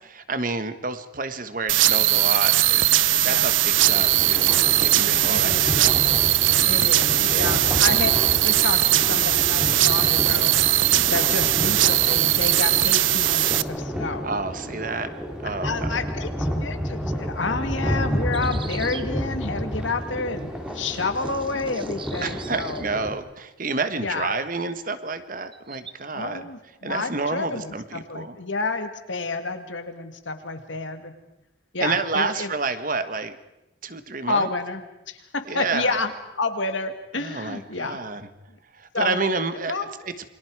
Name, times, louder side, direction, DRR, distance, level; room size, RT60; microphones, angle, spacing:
voice 1, 0.0-4.5 4.8-6.0 6.8-6.9 7.2-7.8 14.2-15.1 15.4-16.1 22.2-26.5 26.8-28.4 31.8-33.4 33.8-34.5 35.5-36.0 37.1-38.3 38.7-40.1, right 3 dB, 45° right, 11 dB, 1.3 m, -29 dB
sound 1, 1.7-13.6, right 14 dB, 85° right, 0.7 m, -20 dB
sound 2, 3.7-23.2, equal, 5° right, 2.9 m, -31 dB
voice 2, 5.3-5.8 6.7-8.1 8.4-10.5 11.1-14.3 15.6-22.9 24.0-24.4 26.1-31.1 31.7-32.5 34.3-35.2 35.5-36.1 36.4-38.0 38.9-39.2 39.7-39.9, left 3 dB, 85° left, 7 dB, 2.2 m, -29 dB
sound 3, 18.3-19.1 20.4-20.5 20.7-22.8 25.5-25.9, right 6 dB, 25° right, 0.9 m, -42 dB
28.5 x 23.5 x 4.8 m, 0.95 s
head